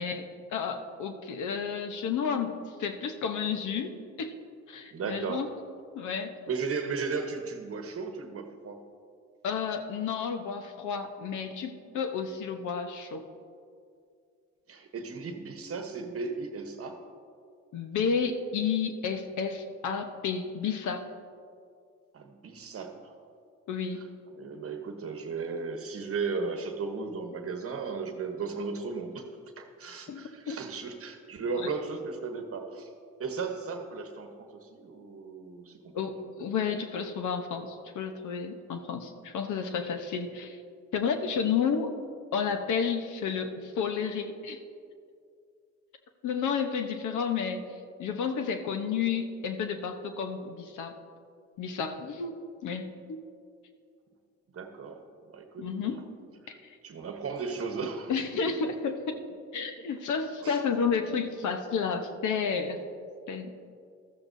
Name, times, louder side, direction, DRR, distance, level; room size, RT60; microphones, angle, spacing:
voice 1, 0.0-4.3 4.7-5.5 5.9-6.3 9.4-13.3 17.7-21.0 23.7-24.1 30.1-30.6 31.5-31.7 35.9-40.6 40.9-42.0 42.3-44.6 46.2-47.6 48.0-50.9 51.6-52.3 52.6-53.2 55.6-56.0 56.5-56.6 58.1-59.2 59.5-62.8 63.3-63.5, left 6 dB, 75° left, 7 dB, 1.0 m, -31 dB
voice 2, 4.9-5.5 6.5-8.8 14.7-17.0 22.1-23.0 23.9-24.1 24.4-29.2 29.6-32.9 33.2-36.2 36.7-36.8 54.5-55.0 55.3-56.0 56.8-58.1 60.4-60.6, right 4 dB, 50° right, 5 dB, 1.1 m, -35 dB
14.0 x 13.5 x 2.7 m, 2.3 s
cardioid pair, 90°, 30 cm